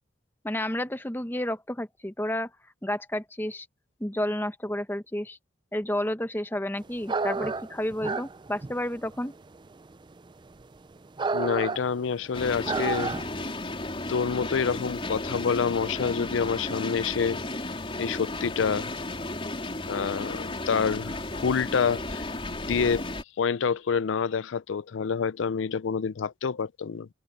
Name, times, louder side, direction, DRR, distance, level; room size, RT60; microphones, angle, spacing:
voice 1, 0.4-2.5 2.8-3.7 4.0-5.4 5.7-9.3, left 1 dB, 10° left, 0.9 m, -31 dB
sound 1, 7.0-13.5, right 4 dB, 25° right, 0.4 m, -31 dB
voice 2, 11.3-13.2 14.1-17.5 18.0-18.9 19.9-23.1 23.4-27.1, left 6 dB, 80° left, 0.5 m, -27 dB
sound 2, 12.3-23.2, left 2 dB, 30° left, 4.3 m, -34 dB
head